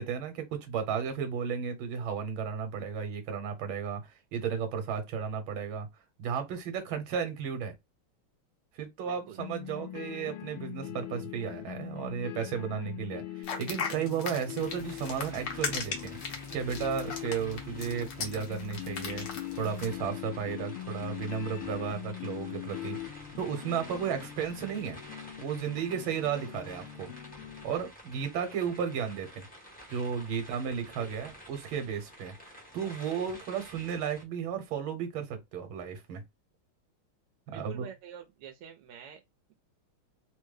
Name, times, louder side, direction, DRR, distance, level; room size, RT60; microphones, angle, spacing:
voice 1, 0.0-5.9 6.2-7.7 8.7-19.3 19.6-23.0 23.4-25.0 25.4-27.1 27.6-29.5 29.9-36.2 37.5-37.9, right 7 dB, 70° right, 1.8 m, -34 dB
voice 2, 9.0-9.4 30.8-31.3 37.5-39.2, right 9 dB, 85° right, 1.6 m, -47 dB
sound 1, 9.4-27.6, left 13 dB, 85° left, 1.6 m, -42 dB
sound 2, 13.4-19.9, left 5 dB, 60° left, 1.5 m, -37 dB
sound 3, 14.6-34.2, equal, 5° left, 0.7 m, -50 dB
4.0 x 2.2 x 3.2 m
omnidirectional pair, 2.4 m